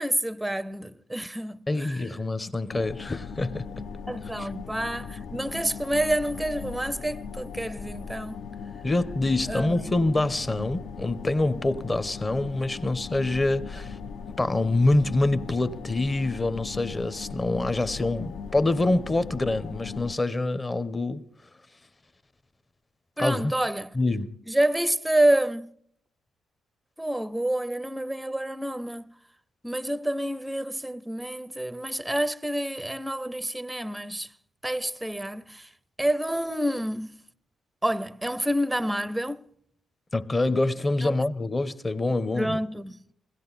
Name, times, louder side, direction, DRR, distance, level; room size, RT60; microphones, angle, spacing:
voice 1, 0.0-2.0 4.1-8.5 9.5-10.1 23.2-23.9 24.5-25.7 27.0-29.1 29.6-34.3 34.6-35.7 36.0-37.2 37.8-39.4 41.0-41.2 42.3-43.0, right 1 dB, 5° right, 0.5 m, -28 dB
voice 2, 1.7-3.7 4.4-4.5 8.8-14.0 14.4-21.2 23.2-23.5 23.9-24.4 40.1-42.6, left 2 dB, 20° left, 0.8 m, -26 dB
sound 1, 2.7-20.2, left 6 dB, 60° left, 0.6 m, -39 dB
21.0 x 16.5 x 4.0 m
cardioid pair, 90°, 0 cm